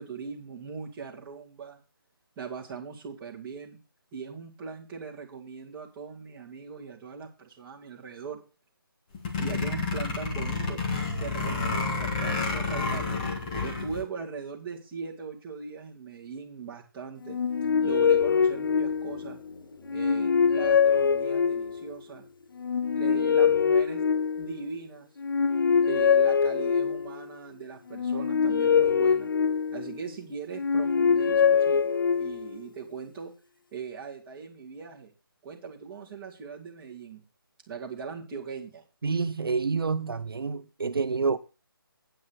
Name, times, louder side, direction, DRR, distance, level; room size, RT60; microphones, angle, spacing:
voice 1, 0.0-1.8 2.4-3.8 4.1-8.4 9.4-10.8 11.2-13.3 13.6-17.4 17.8-19.4 19.9-22.3 22.9-24.0 24.4-25.1 25.9-29.3 29.7-33.3 33.7-35.1 35.4-37.2 37.7-38.8, right 5 dB, 10° right, 2.1 m, -39 dB
sound 1, 9.1-14.0, left 4 dB, 20° left, 1.9 m, -30 dB
sound 2, 17.3-19.4 19.9-21.9 22.6-24.7 25.2-27.2 27.9-30.0 30.5-32.5, left 6 dB, 60° left, 0.5 m, -24 dB
sound 3, 17.6-23.6 23.9-24.0, left 4 dB, 35° left, 3.8 m, -51 dB
voice 2, 39.0-41.4, right 4 dB, 70° right, 0.8 m, -28 dB
9.1 x 6.1 x 6.4 m
figure-of-eight pair, 165°, 12 cm